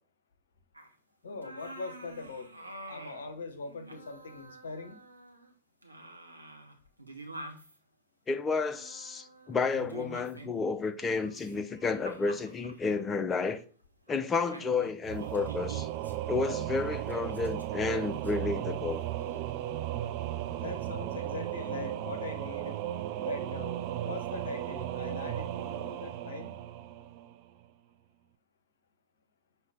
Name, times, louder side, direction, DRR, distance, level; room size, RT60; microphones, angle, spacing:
sound 1, 0.7-0.9 1.3-3.3 3.6-5.5 5.8-7.8 8.7-10.7 11.1-13.0 13.4-13.6 14.1-14.2 14.5-16.2 16.9-18.3 19.2-19.5, right 1 dB, 85° right, 0.6 m, -48 dB
voice 1, 1.2-5.0 20.6-22.8 23.2-23.8 24.0-26.5, left 3 dB, 65° left, 0.6 m, -41 dB
voice 2, 8.3-13.6 14.1-15.9 16.3-19.1, left 4 dB, 20° left, 0.5 m, -31 dB
Singing / Musical instrument, 15.0-27.6, right 12 dB, 45° right, 0.3 m, -35 dB
5.5 x 2.8 x 3.5 m
figure-of-eight pair, 90°, 0 cm